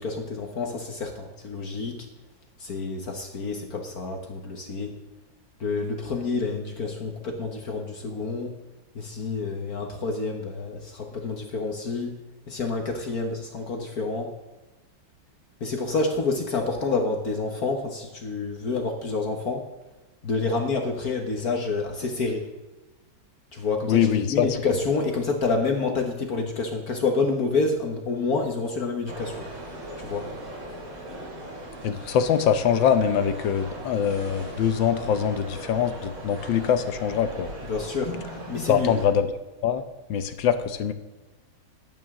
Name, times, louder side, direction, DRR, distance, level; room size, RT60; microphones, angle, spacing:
voice 1, 0.0-2.1 2.6-4.9 5.6-8.5 8.9-12.2 12.5-14.3 15.6-19.7 20.2-22.5 23.5-29.4 30.0-30.3 37.6-38.2 38.5-38.9, left 3 dB, 50° left, 3 dB, 1.6 m, -28 dB
voice 2, 23.9-24.5 31.8-37.5 38.7-39.3 39.6-39.8 40.1-40.9, left 8 dB, 70° left, 10 dB, 1.5 m, -23 dB
sound 1, 29.1-39.1, right 1 dB, 90° right, 3.8 m, -38 dB
14.5 x 11.0 x 3.7 m, 1.1 s
omnidirectional pair, 2.2 m